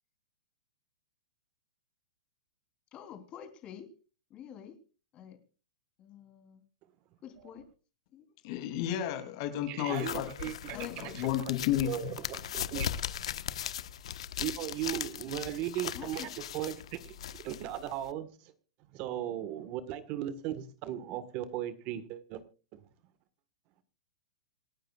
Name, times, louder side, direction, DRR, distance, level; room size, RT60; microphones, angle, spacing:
voice 1, 2.9-3.9 4.3-4.8 5.1-5.4 6.0-6.6 7.2-7.6 8.1-8.2 10.7-11.1 15.9-16.3, left 9 dB, 30° left, 6 dB, 3.4 m, -47 dB
voice 2, 8.4-10.3 10.7-11.9, left 11 dB, 50° left, 7 dB, 2.8 m, -32 dB
voice 3, 9.7-11.3 11.8-12.9 14.4-18.5 18.9-22.4 22.7-22.8, right 12 dB, 40° right, 13 dB, 1.4 m, -37 dB
sound 1, 9.9-18.1, left 10 dB, 75° left, 1.1 m, -39 dB
27.5 x 9.3 x 2.4 m, 0.34 s
hypercardioid pair, 130°, 3 cm